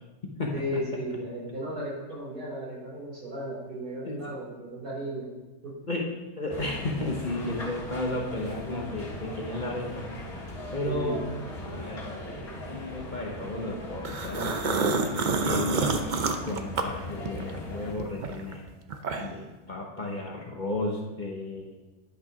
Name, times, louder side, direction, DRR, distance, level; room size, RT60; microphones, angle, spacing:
voice 1, 0.5-5.3 5.6-5.8 10.8-11.2, equal, 80° right, -4 dB, 3.7 m, -35 dB
voice 2, 6.4-10.1 10.7-11.2 11.6-18.6 19.1-21.7, left 2 dB, 35° left, -1 dB, 1.1 m, -34 dB
sound 1, 6.5-17.9, left 1 dB, 70° left, 2.3 m, -39 dB
sound 2, 14.0-17.6 18.0-19.5, right 4 dB, 55° right, 0.5 m, -28 dB
10.5 x 6.1 x 5.0 m, 1.1 s
omnidirectional pair, 1.7 m